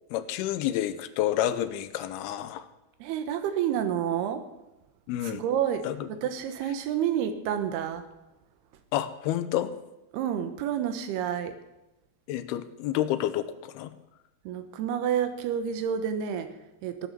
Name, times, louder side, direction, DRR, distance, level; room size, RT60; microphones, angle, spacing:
voice 1, 0.1-2.7 5.1-5.4 5.8-6.0 8.9-9.7 12.3-13.9, left 12 dB, 80° left, 12 dB, 2.6 m, -29 dB
voice 2, 3.0-4.4 5.2-8.0 10.1-11.6 14.4-17.1, right 9 dB, 85° right, 9 dB, 3.1 m, -29 dB
15.5 x 9.0 x 6.8 m, 0.94 s
omnidirectional pair, 4.6 m